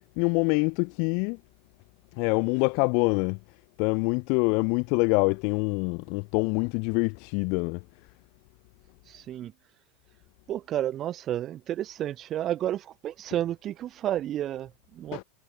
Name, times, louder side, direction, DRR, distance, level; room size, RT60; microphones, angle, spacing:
voice 1, 0.2-1.4 2.2-3.4 3.8-7.8 15.1-15.2, left 35 dB, 55° left, 0.8 m, -25 dB
voice 2, 9.1-9.5 10.5-15.2, right 12 dB, 35° right, 2.0 m, -31 dB
hypercardioid pair, 110°, 0 cm